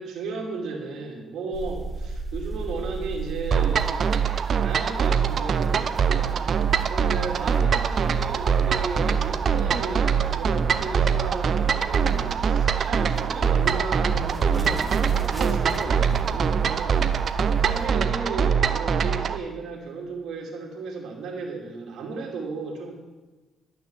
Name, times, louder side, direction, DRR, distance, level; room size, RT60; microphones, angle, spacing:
voice 1, 0.0-4.1 4.6-6.5 6.9-17.2 17.6-22.9, right 4 dB, 80° right, 0 dB, 2.5 m, -34 dB
sound 1, 1.5-17.9, right 2 dB, 5° right, 1.7 m, -37 dB
sound 2, 3.5-19.4, right 7 dB, 55° right, 0.7 m, -23 dB
12.5 x 6.3 x 8.1 m, 1.2 s
cardioid pair, 90°, 0 cm